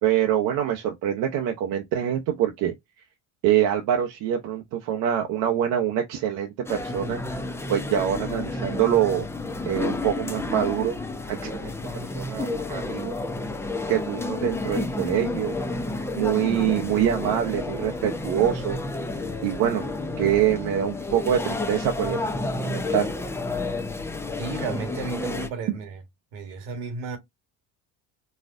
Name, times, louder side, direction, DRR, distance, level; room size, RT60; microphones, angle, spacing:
voice 1, 0.0-2.7 3.4-7.4 7.7-9.2 9.7-10.9 11.3-11.7 12.1-13.1 13.9-15.6 16.2-18.8 19.4-19.9 20.2-22.4 22.6-23.1, right 10 dB, 70° right, 0.8 m, -25 dB
sound 1, 6.7-25.5, left 2 dB, 10° left, 0.5 m, -31 dB
voice 2, 24.4-26.0 26.3-27.2, right 4 dB, 85° right, 1.5 m, -33 dB
4.2 x 2.4 x 2.4 m
supercardioid pair, 105°, 34 cm